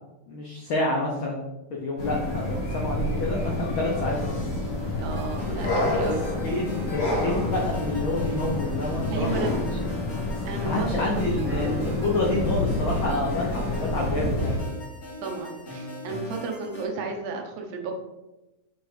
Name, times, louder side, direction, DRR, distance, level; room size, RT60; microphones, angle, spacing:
voice 1, 0.3-1.5 1.7-4.5 6.0-6.1 6.4-9.6 10.6-14.6, left 2 dB, 85° left, -2 dB, 1.1 m, -28 dB
sound 1, 2.0-14.6, left 1 dB, 50° left, 2.1 m, -28 dB
voice 2, 5.0-6.2 9.1-9.6 10.5-11.3 11.6-11.9 13.2-13.3 15.2-18.0, right 4 dB, 80° right, 2 dB, 2.3 m, -33 dB
sound 2, 5.1-16.9, left 3 dB, 35° left, 1.9 m, -38 dB
6.4 x 3.3 x 4.8 m, 0.99 s
omnidirectional pair, 3.5 m